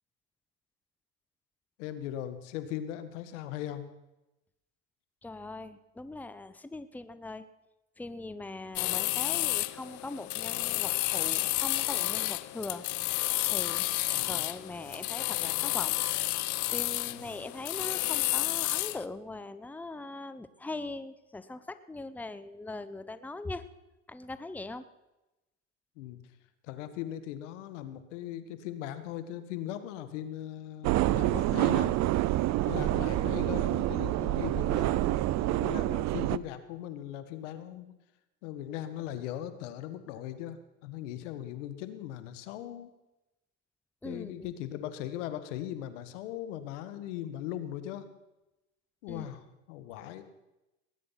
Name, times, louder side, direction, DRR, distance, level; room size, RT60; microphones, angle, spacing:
voice 1, 1.8-3.8 14.1-14.4 17.1-17.3 26.0-26.2 26.6-32.0 32.6-37.9 38.4-42.9 44.0-48.1 49.0-49.4 49.7-50.2, left 11 dB, 85° left, 11 dB, 1.5 m, -39 dB
voice 2, 5.2-7.5 8.0-12.9 13.5-16.0 16.7-23.6 24.1-24.9 44.0-44.5 49.1-49.3, left 2 dB, 5° left, 13 dB, 0.8 m, -41 dB
sound 1, 8.8-19.1, left 18 dB, 55° left, 0.7 m, -31 dB
sound 2, 30.8-36.4, right 16 dB, 50° right, 0.6 m, -27 dB
19.5 x 10.0 x 5.8 m, 0.97 s
supercardioid pair, 100°, 35 cm